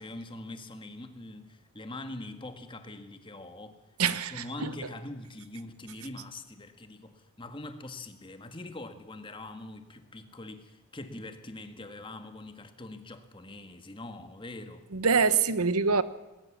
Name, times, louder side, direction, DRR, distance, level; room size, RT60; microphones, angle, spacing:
voice 1, 0.0-3.8 4.1-14.8, left 2 dB, 20° left, 1.7 m, -43 dB
voice 2, 4.0-4.7 14.9-16.0, right 5 dB, 85° right, 1.1 m, -25 dB
19.5 x 18.5 x 7.4 m
head